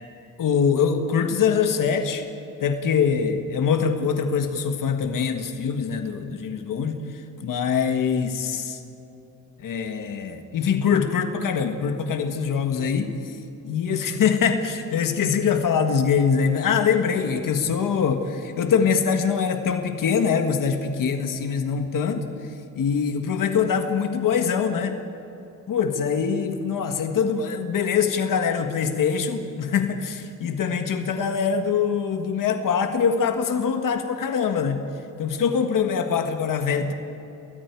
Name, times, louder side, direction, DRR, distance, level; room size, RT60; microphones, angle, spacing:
voice 1, 0.4-2.3 2.6-8.8 9.6-13.4 13.6-22.3 22.7-25.0 25.7-34.8 35.2-36.9, left 6 dB, 80° left, 6 dB, 1.7 m, -23 dB
30.0 x 20.5 x 4.8 m, 2.9 s
cardioid pair, 125°, 32 cm